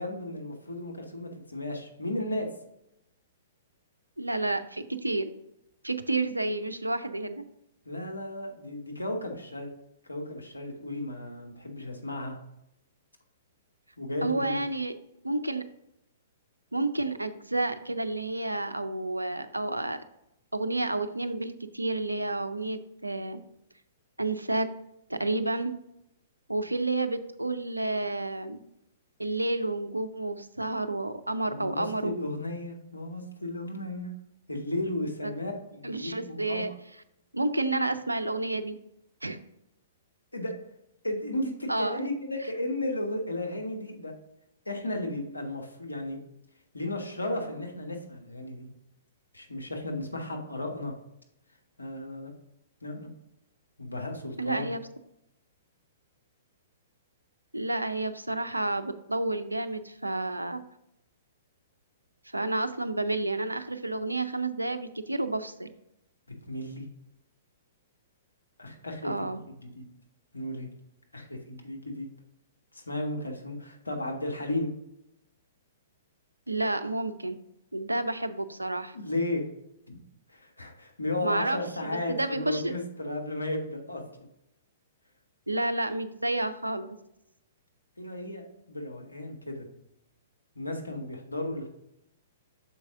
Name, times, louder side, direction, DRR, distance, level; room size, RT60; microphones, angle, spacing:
voice 1, 0.0-2.5 7.8-9.7 10.0-12.4 14.0-14.6 31.5-34.1 34.5-36.7 40.3-40.5 41.0-44.1 44.6-46.2 46.7-48.7 49.3-50.9 51.8-52.3 52.8-53.1 53.8-54.7 66.3-66.8 68.6-69.3 69.7-69.8 70.3-70.7 71.1-72.1 72.7-74.7 78.9-79.4 79.9-80.0 80.3-84.0 88.0-89.7 90.5-91.7, left 1 dB, 80° left, 1 dB, 1.4 m, -34 dB
voice 2, 4.2-5.3 5.8-7.4 14.2-14.9 15.2-15.6 16.7-20.0 20.5-23.4 24.2-24.7 25.1-25.7 26.5-28.6 29.2-32.1 35.2-35.3 35.8-36.7 37.3-38.8 39.2-39.4 41.7-42.1 54.4-54.8 57.5-60.6 62.3-65.7 69.0-69.4 76.5-77.4 77.7-79.0 81.2-81.6 82.1-82.7 85.5-87.0, right 2 dB, 90° right, 10 dB, 0.5 m, -30 dB
6.8 x 4.7 x 3.7 m, 0.82 s
figure-of-eight pair, 115°, 0 cm